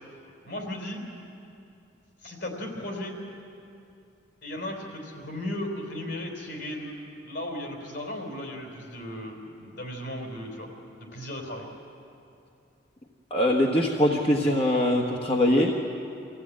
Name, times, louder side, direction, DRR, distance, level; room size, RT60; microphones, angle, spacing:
voice 1, 0.4-1.1 2.2-3.2 4.4-6.9 7.2-10.7 11.0-11.7, left 1 dB, 60° left, 0 dB, 4.1 m, -36 dB
voice 2, 13.3-15.7, left 1 dB, 30° left, -1 dB, 1.2 m, -22 dB
24.5 x 15.5 x 8.7 m, 2.7 s
head